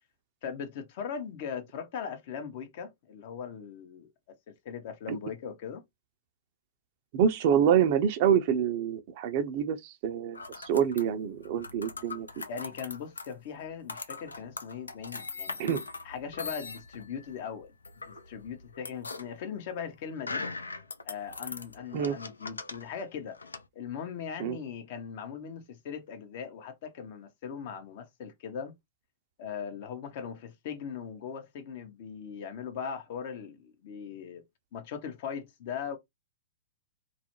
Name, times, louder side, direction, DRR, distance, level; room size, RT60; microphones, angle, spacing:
voice 1, 0.4-4.1 4.5-5.8 12.5-15.6 16.0-17.7 18.1-20.5 21.0-23.4 23.7-28.7 29.4-34.4 34.7-36.0, left 7 dB, 50° left, 0.7 m, -39 dB
voice 2, 7.1-12.3 15.6-15.8 21.9-22.2 24.4-24.6, right 8 dB, 50° right, 0.5 m, -26 dB
sound 1, 10.3-23.6, left 4 dB, 85° left, 0.4 m, -41 dB
2.4 x 2.1 x 2.9 m
hypercardioid pair, 115°, 0 cm